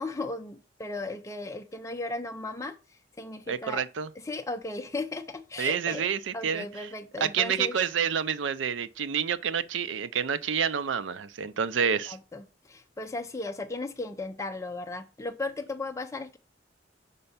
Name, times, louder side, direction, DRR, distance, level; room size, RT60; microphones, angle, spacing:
voice 1, 0.0-3.8 4.2-6.1 6.3-7.8 11.8-16.4, left 2 dB, 15° left, 0.5 m, -36 dB
voice 2, 3.5-4.1 5.6-6.7 7.2-12.2, right 7 dB, 80° right, 0.5 m, -28 dB
5.4 x 4.4 x 5.5 m
head